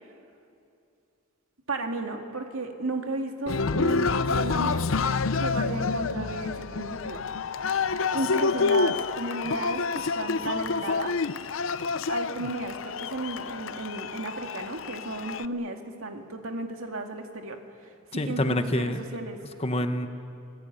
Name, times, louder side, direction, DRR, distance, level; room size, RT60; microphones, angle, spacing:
voice 1, 1.7-4.9 5.4-7.2 7.9-11.2 12.1-19.4, right 2 dB, 85° right, 4 dB, 2.3 m, -34 dB
Cheering, 3.5-15.5, left 4 dB, 75° left, 0.6 m, -28 dB
voice 2, 18.1-19.0 19.6-20.1, left 1 dB, 30° left, 8 dB, 1.2 m, -26 dB
27.0 x 18.5 x 9.1 m, 2.5 s
head